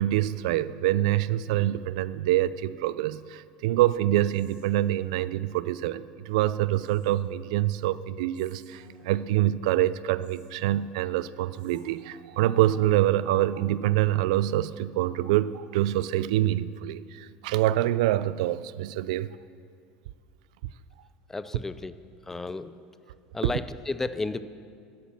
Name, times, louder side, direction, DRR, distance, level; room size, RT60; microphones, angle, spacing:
voice 1, 0.0-19.4, right 14 dB, 85° right, 17 dB, 0.4 m, -25 dB
Whispering, 4.3-5.4 6.7-7.4 8.3-9.5 10.2-11.1 11.5-12.4, right 1 dB, 35° right, 2.5 m, -57 dB
voice 2, 21.3-22.0 22.2-22.8 23.3-24.4, left 3 dB, 10° left, 14 dB, 0.4 m, -32 dB
13.0 x 8.5 x 7.5 m, 2.3 s
cardioid pair, 150°, 4 cm